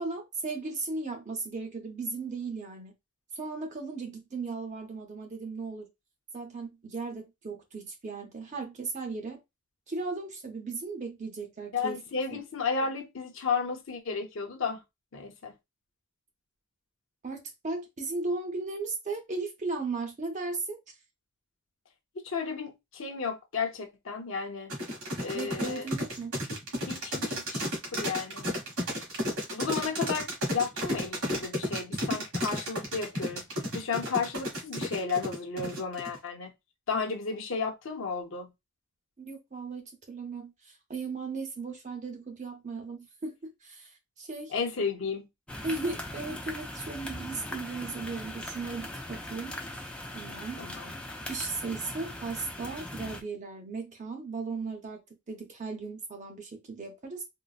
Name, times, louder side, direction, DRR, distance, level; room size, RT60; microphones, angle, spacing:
voice 1, 0.0-2.9 3.4-5.9 6.3-9.4 9.9-12.0 12.3-12.4 17.2-20.8 25.3-26.4 39.2-40.5 40.9-43.9 44.2-44.5 45.6-49.6 50.1-50.6 51.3-55.0 55.3-57.2, right 3 dB, 35° right, 0.6 m, -36 dB
voice 2, 11.7-14.8 15.1-15.5 22.1-24.7 25.2-25.9 26.9-27.7 27.9-28.5 29.5-33.4 33.7-36.5 36.9-38.5 44.5-45.3 50.6-50.9, left 5 dB, 60° left, 0.6 m, -33 dB
sound 1, 24.7-36.2, equal, 75° right, 1.4 m, -32 dB
sound 2, 45.5-53.2, left 1 dB, 5° left, 0.3 m, -40 dB
3.8 x 2.0 x 2.4 m
head